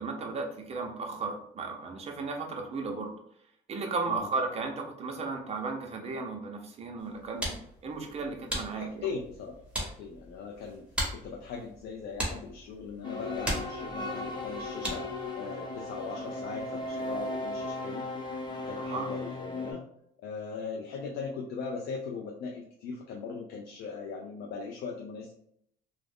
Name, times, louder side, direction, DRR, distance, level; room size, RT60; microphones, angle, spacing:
voice 1, 0.0-3.1 3.7-7.5 7.8-9.1 18.8-19.1, right 4 dB, 40° right, 3 dB, 0.6 m, -35 dB
sound 1, 7.0-15.3, right 1 dB, 5° right, 1.0 m, -38 dB
voice 2, 8.7-10.8 11.1-18.1 18.6-19.8 20.2-25.3, left 5 dB, 75° left, 0 dB, 0.5 m, -39 dB
sound 2, 13.0-19.7, left 2 dB, 25° left, 0.7 m, -36 dB
2.4 x 2.1 x 3.4 m, 0.69 s
cardioid pair, 110°, 17 cm